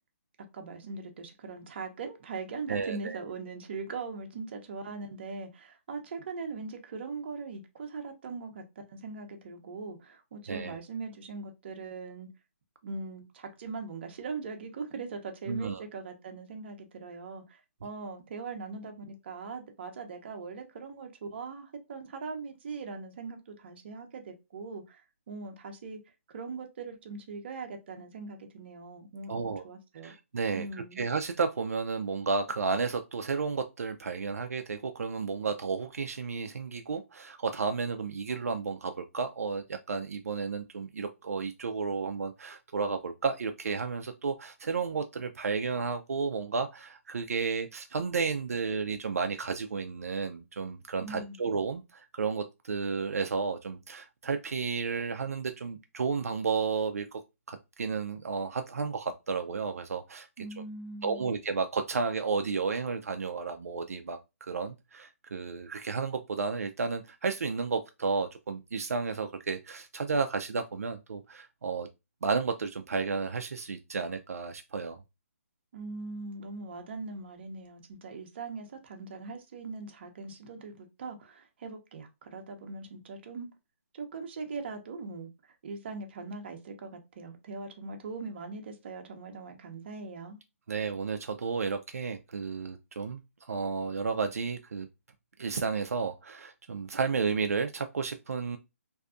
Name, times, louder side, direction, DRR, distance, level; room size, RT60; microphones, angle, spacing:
voice 1, 0.5-12.3 12.8-26.0 26.3-30.1 30.5-31.0 51.0-51.4 60.4-61.3 75.7-83.5 83.9-90.4, right 4 dB, 45° right, 0.7 m, -41 dB
voice 2, 2.7-3.2 10.5-10.8 15.5-15.8 29.3-29.6 30.0-30.7 31.0-57.2 57.5-60.3 61.0-71.9 72.2-75.0 90.7-93.2 93.5-94.9 95.4-98.6, right 5 dB, 85° right, 0.4 m, -32 dB
2.6 x 2.2 x 2.4 m
hypercardioid pair, 155°, 8 cm